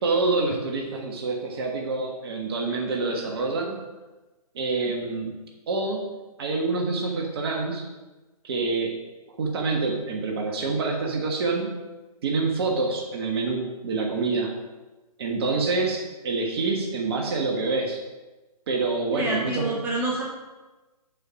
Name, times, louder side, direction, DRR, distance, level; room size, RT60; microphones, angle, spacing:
voice 1, 0.0-3.8 4.5-5.4 5.7-7.9 8.4-9.0 9.3-11.8 12.2-14.6 15.2-18.0 18.7-19.8, right 3 dB, 40° right, 1 dB, 1.3 m, -27 dB
voice 2, 19.1-20.2, right 2 dB, 10° right, -4 dB, 1.3 m, -27 dB
6.9 x 5.7 x 6.0 m, 1.2 s
figure-of-eight pair, 135°, 20 cm